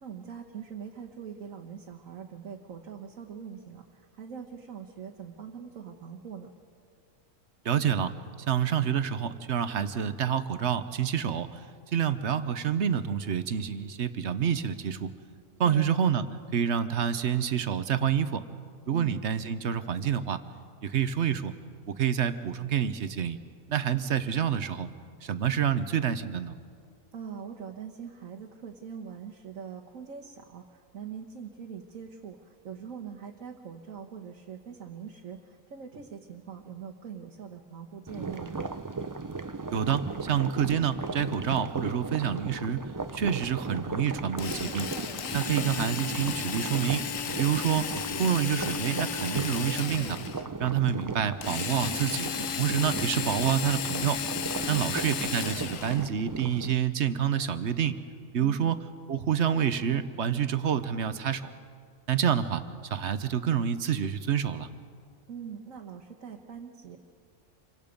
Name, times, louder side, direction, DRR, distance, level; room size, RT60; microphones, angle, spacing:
voice 1, 0.0-6.5 15.6-16.0 18.9-19.1 27.1-38.6 45.4-45.8 54.6-55.0 58.4-58.8 65.3-67.0, right 7 dB, 80° right, 1 dB, 1.6 m, -42 dB
voice 2, 7.6-8.1 8.5-11.6 11.9-15.1 15.6-16.2 16.5-18.4 18.9-20.4 20.8-21.5 22.0-23.4 23.7-24.9 25.2-26.5 39.7-42.8 43.1-44.9 45.3-47.1 47.4-47.9 48.2-50.2 50.6-52.3 52.6-54.2 54.7-58.0 58.3-58.8 59.1-61.5 62.1-62.6 62.9-64.7, right 8 dB, 60° right, 12 dB, 1.0 m, -27 dB
sound 1, 38.1-56.7, right 3 dB, 35° right, 0.3 m, -37 dB
Drill, 44.4-50.5 51.4-56.1, left 8 dB, 80° left, 1.3 m, -34 dB
28.0 x 24.0 x 5.2 m, 2.2 s
omnidirectional pair, 1.4 m